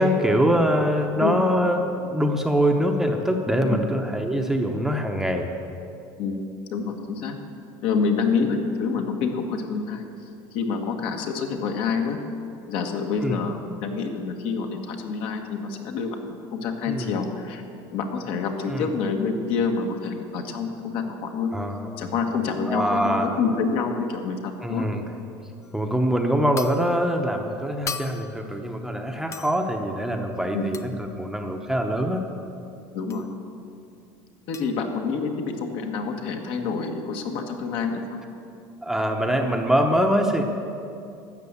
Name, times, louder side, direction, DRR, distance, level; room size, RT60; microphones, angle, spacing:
voice 1, 0.0-5.5 13.2-13.3 16.9-17.1 18.7-18.9 21.5-21.9 22.7-23.3 24.6-25.0 25.7-32.2 38.8-40.4, equal, 5° right, 3 dB, 0.8 m, -23 dB
voice 2, 6.7-7.4 7.8-10.0 10.5-12.2 12.7-16.2 16.5-17.6 17.9-21.5 22.0-24.9 30.5-30.7 32.9-33.3 34.5-38.2, left 5 dB, 60° left, 4 dB, 1.5 m, -27 dB
sound 1, 25.6-25.8 26.6-27.0 27.9-28.5 29.3-29.7 30.7-31.0 33.1-33.3 34.5-34.8, left 6 dB, 30° left, 0.6 m, -36 dB
12.5 x 7.5 x 8.2 m, 2.6 s
cardioid pair, 140°, 10 cm